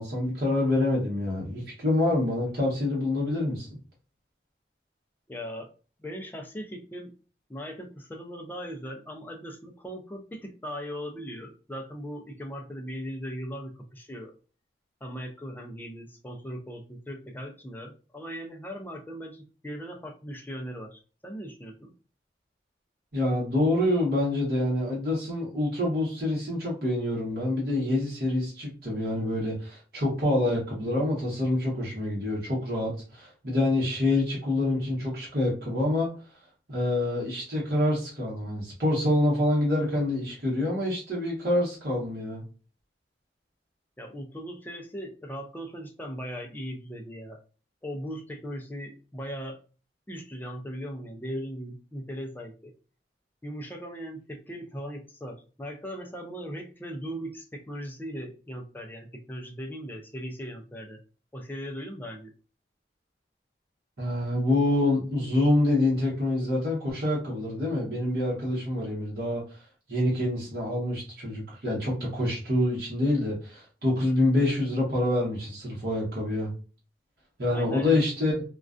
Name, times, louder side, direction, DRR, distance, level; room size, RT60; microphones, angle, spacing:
voice 1, 0.0-3.7 23.1-36.1 36.7-42.4 64.0-69.6 69.9-76.5 77.4-78.4, left 1 dB, 60° right, -5 dB, 0.9 m, -26 dB
voice 2, 5.3-5.7 6.0-7.1 7.5-14.3 15.0-21.9 44.0-47.4 47.8-49.6 50.1-52.7 53.4-61.0 61.3-62.3 77.5-78.1, equal, 10° left, 2 dB, 0.3 m, -39 dB
2.4 x 2.2 x 2.4 m, 0.36 s
head